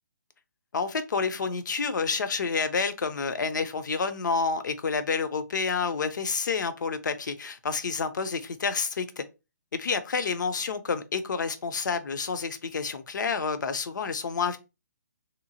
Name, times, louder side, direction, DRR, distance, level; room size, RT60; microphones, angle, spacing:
voice 1, 0.7-9.2 9.7-14.6, left 5 dB, 75° left, 0.5 m, -29 dB
2.8 x 2.0 x 2.7 m
hypercardioid pair, 150°, 10 cm